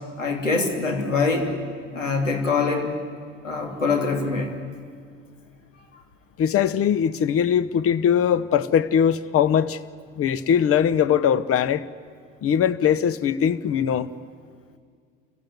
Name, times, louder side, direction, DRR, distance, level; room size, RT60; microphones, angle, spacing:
voice 1, 0.2-1.5 1.9-2.9 3.4-4.5, left 4 dB, 90° left, 3.1 m, -24 dB
voice 2, 6.4-9.8 10.2-11.8 12.4-14.1, left 8 dB, 40° left, 1.0 m, -21 dB
28.5 x 15.5 x 9.5 m
figure-of-eight pair, 70°, 37 cm